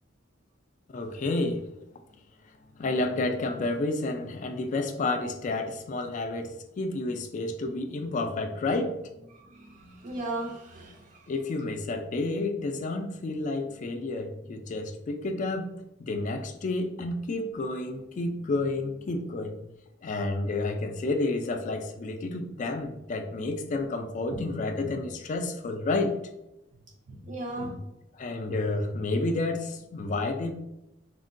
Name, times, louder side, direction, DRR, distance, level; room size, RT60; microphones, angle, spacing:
voice 1, 0.9-1.6 2.8-9.3 11.3-15.7 16.0-19.6 20.0-26.1 28.2-30.5, left 2 dB, 40° left, 7 dB, 0.3 m, -30 dB
voice 2, 9.4-11.3 24.3-24.5 27.1-27.8, right 1 dB, 40° right, 1 dB, 0.4 m, -37 dB
3.6 x 2.1 x 2.5 m, 0.92 s
head